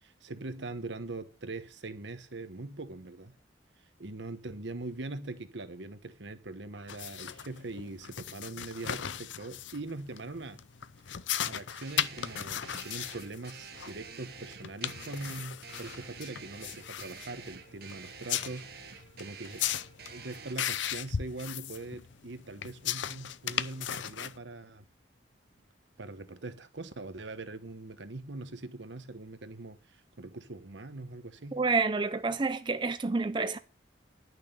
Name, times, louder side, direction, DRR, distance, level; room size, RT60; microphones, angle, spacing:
voice 1, 0.0-3.3 4.0-10.6 11.5-19.7 20.1-24.8 26.0-31.6, right 2 dB, 70° right, 1.1 m, -42 dB
sound 1, 6.9-24.4, left 10 dB, 75° left, 0.6 m, -37 dB
sound 2, 11.8-20.5, right 6 dB, 55° right, 1.4 m, -48 dB
voice 2, 31.5-33.6, right 4 dB, 25° right, 0.4 m, -29 dB
11.0 x 6.4 x 6.7 m
head